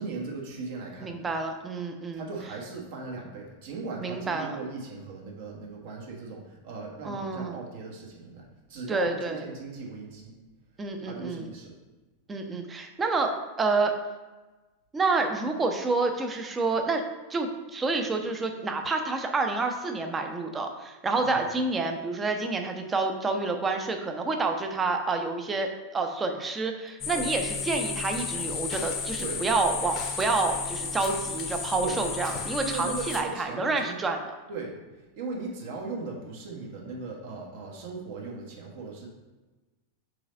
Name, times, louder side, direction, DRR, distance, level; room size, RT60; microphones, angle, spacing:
voice 1, 0.0-1.3 2.1-10.4 11.0-11.7 21.2-21.4 27.1-27.3 29.2-29.4 31.8-32.0 32.6-33.9 34.5-34.8 35.1-39.1, right 4 dB, 55° right, -1 dB, 1.2 m, -38 dB
voice 2, 1.0-2.3 4.0-4.6 7.0-7.6 8.9-9.4 10.8-11.5 12.3-13.9 14.9-17.0 17.3-34.3, right 3 dB, 15° right, 4 dB, 0.7 m, -28 dB
sound 1, 27.0-33.2, left 5 dB, 30° left, 0.8 m, -33 dB
4.8 x 4.0 x 5.1 m, 1.2 s
figure-of-eight pair, 90°, 0 cm